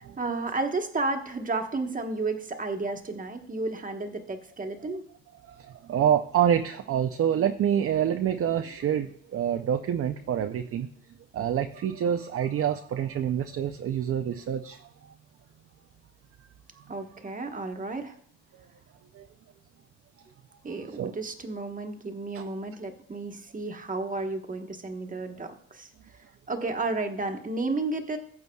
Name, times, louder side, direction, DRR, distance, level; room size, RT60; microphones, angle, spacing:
voice 1, 0.0-5.0 16.9-18.2 20.6-28.2, right 3 dB, 25° right, 5 dB, 1.2 m, -32 dB
voice 2, 5.4-10.9 11.3-15.1 19.1-19.3 21.0-21.1 22.3-22.5, right 9 dB, 50° right, 8 dB, 0.5 m, -27 dB
15.0 x 7.7 x 2.3 m, 0.63 s
cardioid pair, 90°, 30 cm